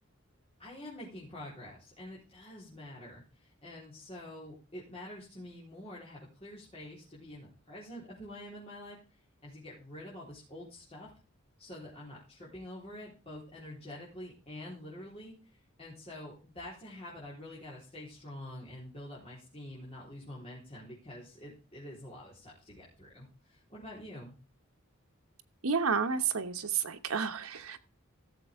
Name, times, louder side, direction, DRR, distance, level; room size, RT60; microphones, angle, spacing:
voice 1, 0.6-9.0 9.4-11.1 11.6-15.3 15.8-24.3, left 1 dB, 30° left, -7 dB, 4.1 m, -47 dB
voice 2, 25.6-27.8, right 6 dB, 80° right, 8 dB, 1.1 m, -31 dB
15.5 x 7.3 x 3.6 m, 0.34 s
head